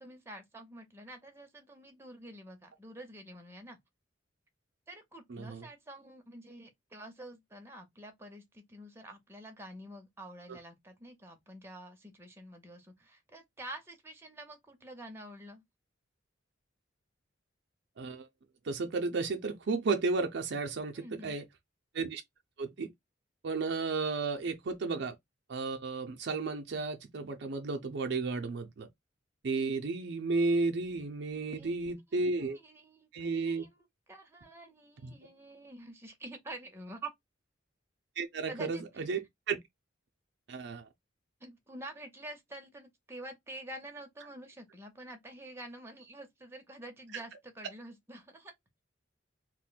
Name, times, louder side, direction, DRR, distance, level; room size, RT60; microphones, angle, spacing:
voice 1, 0.0-3.8 4.9-15.6 20.9-21.4 31.3-31.8 32.1-32.2 32.5-37.1 38.5-39.0 41.4-48.5, right 1 dB, 15° right, 0.7 m, -48 dB
voice 2, 5.3-5.7 18.0-18.3 18.6-21.4 21.9-22.2 22.6-22.9 23.4-25.1 25.5-28.9 29.4-32.6 33.1-33.7 35.0-35.1 38.2-39.6 40.5-40.9, right 3 dB, 60° right, 0.5 m, -33 dB
2.5 x 2.1 x 3.8 m
head